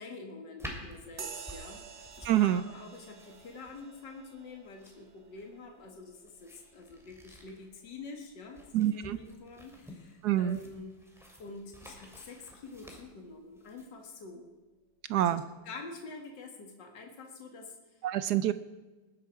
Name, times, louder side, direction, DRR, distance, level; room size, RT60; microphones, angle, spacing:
voice 1, 0.0-1.8 2.2-11.0 11.4-14.5 15.1-15.4 15.6-18.0, left 3 dB, 60° left, 3 dB, 2.4 m, -47 dB
sound 1, 0.6-13.9, equal, ahead, 2.6 m, -51 dB
sound 2, 1.2-9.1, right 5 dB, 45° right, 1.0 m, -50 dB
voice 2, 2.2-2.6 8.7-9.2 10.2-10.6 15.1-15.4 18.0-18.5, right 12 dB, 70° right, 14 dB, 1.0 m, -26 dB
20.5 x 10.0 x 4.7 m, 1.2 s
omnidirectional pair, 2.2 m